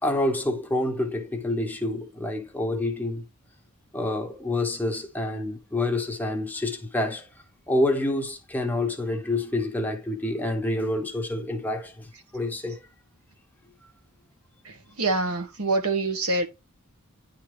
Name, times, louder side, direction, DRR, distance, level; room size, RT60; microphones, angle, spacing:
voice 1, 0.0-3.2 3.9-7.3 7.7-12.1 12.3-12.8, left 1 dB, 10° left, 1.0 m, -27 dB
voice 2, 14.6-16.5, right 2 dB, 70° right, 1.3 m, -26 dB
9.8 x 3.7 x 3.3 m
head